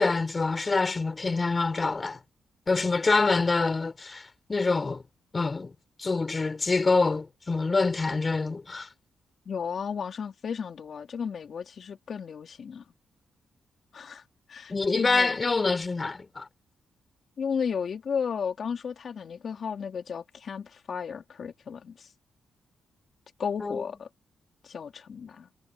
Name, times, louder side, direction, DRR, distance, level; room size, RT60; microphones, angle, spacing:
voice 1, 0.0-2.2 2.7-5.0 5.3-5.7 6.0-8.9 14.7-16.5 23.6-23.8, left 3 dB, 25° left, 4.4 m, -26 dB
voice 2, 9.5-12.8 13.9-14.2 14.5-15.4 17.4-22.1 23.4-24.1 24.6-25.5, left 6 dB, 50° left, 3.6 m, -34 dB
cardioid pair, 125°, 0 cm